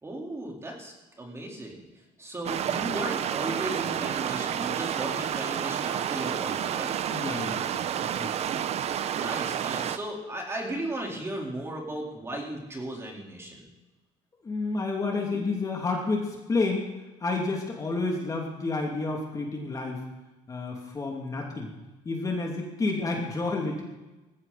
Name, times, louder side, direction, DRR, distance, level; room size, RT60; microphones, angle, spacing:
voice 1, 0.0-1.8 2.2-6.9 9.1-13.7 15.3-15.4, right 1 dB, 20° right, -1 dB, 4.2 m, -36 dB
sound 1, 2.4-10.0, right 9 dB, 50° right, 0.8 m, -30 dB
voice 2, 7.1-8.3 14.4-16.9 17.2-20.0 20.5-21.7 22.0-23.8, left 3 dB, 25° left, 0 dB, 2.8 m, -30 dB
19.0 x 15.5 x 4.3 m, 1.1 s
cardioid pair, 120°, 14 cm